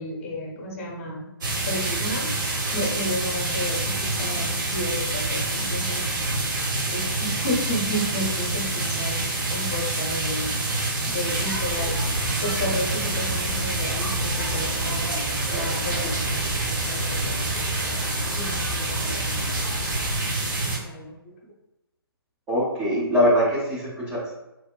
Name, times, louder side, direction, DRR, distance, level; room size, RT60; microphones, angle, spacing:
voice 1, 0.0-1.3 1.7-2.3 2.7-6.2 6.9-10.6 11.1-15.2 15.5-17.5 18.3-19.5 20.6-21.3, equal, 35° left, -1 dB, 0.6 m, -32 dB
sound 1, 1.4-20.8, right 2 dB, 50° right, 0.7 m, -27 dB
sound 2, 11.3-20.1, right 1 dB, 70° right, 1.0 m, -33 dB
voice 2, 22.5-24.3, equal, 10° right, -6 dB, 0.4 m, -22 dB
2.9 x 2.0 x 2.2 m, 0.95 s
figure-of-eight pair, 140°, 13 cm